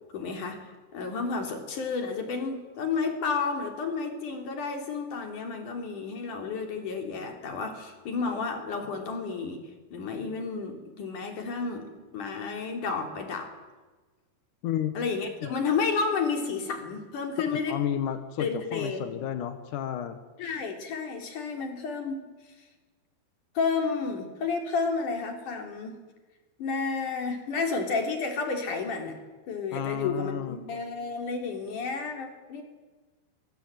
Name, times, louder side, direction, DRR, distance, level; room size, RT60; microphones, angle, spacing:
voice 1, 0.1-0.6 0.9-9.6 9.9-13.5 14.9-17.8 18.4-19.2 20.4-22.3 23.5-26.0 26.6-29.2 29.5-32.6, left 4 dB, 45° left, 4 dB, 4.7 m, -31 dB
voice 2, 14.6-15.0 15.4-15.5 17.5-20.2 29.7-30.6, left 10 dB, 65° left, 8 dB, 2.1 m, -32 dB
25.0 x 23.5 x 9.2 m, 1.3 s
omnidirectional pair, 5.2 m